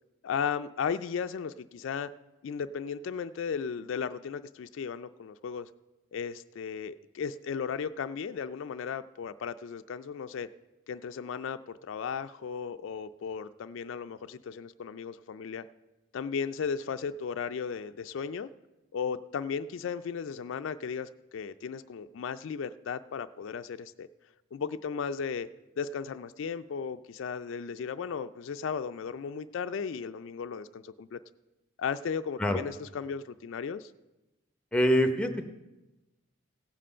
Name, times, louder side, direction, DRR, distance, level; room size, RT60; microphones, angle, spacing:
voice 1, 0.2-2.1 2.4-5.7 6.1-10.5 10.9-15.7 16.1-18.5 18.9-24.1 24.5-25.5 25.8-31.2 31.8-33.9, left 6 dB, 70° left, 12 dB, 0.3 m, -35 dB
voice 2, 34.7-35.4, equal, 5° left, 7 dB, 0.6 m, -24 dB
16.0 x 7.6 x 5.5 m, 1.0 s
head